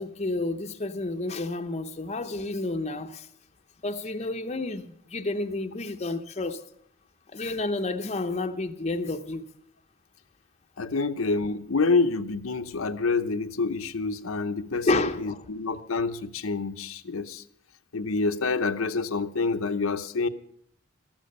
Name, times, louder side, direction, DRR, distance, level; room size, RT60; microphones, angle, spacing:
voice 1, 0.0-3.3 3.8-6.6 7.3-9.4 14.8-15.4, left 2 dB, 30° left, 0.7 m, -30 dB
voice 2, 10.8-17.4 17.9-20.3, left 4 dB, 80° left, 0.8 m, -27 dB
13.5 x 13.5 x 5.4 m
head